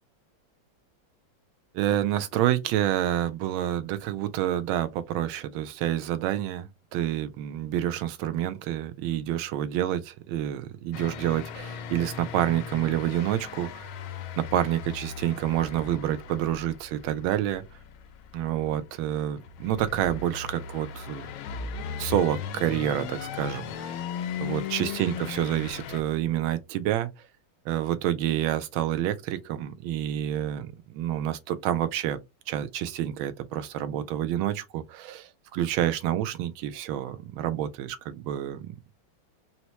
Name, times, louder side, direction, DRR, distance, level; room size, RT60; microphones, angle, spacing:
voice 1, 1.7-13.9 14.4-17.6 18.3-21.3 22.0-24.0 24.4-27.1 27.7-32.2 32.5-38.7, right 12 dB, 80° right, 1.4 m, -28 dB
sound 1, 10.9-26.0, left 7 dB, 85° left, 1.4 m, -38 dB
4.3 x 2.1 x 2.8 m
omnidirectional pair, 2.2 m